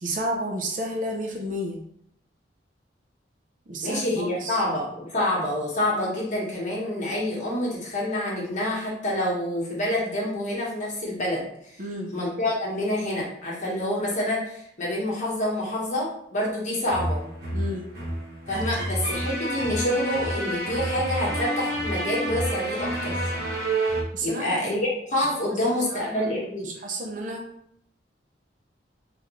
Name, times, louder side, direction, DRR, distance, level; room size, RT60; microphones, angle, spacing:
voice 1, 0.0-1.8 3.7-4.6 11.8-12.1 17.5-17.8 24.1-24.7 25.9-26.2 26.6-27.4, right 1 dB, 50° right, 0 dB, 0.6 m, -31 dB
voice 2, 3.8-11.7 12.1-17.2 18.5-23.3 24.2-26.7, left 1 dB, 45° left, -5 dB, 1.4 m, -27 dB
sound 1, 16.9-24.0, right 1 dB, 65° right, 1.2 m, -29 dB
3.6 x 3.5 x 3.1 m, 0.74 s
head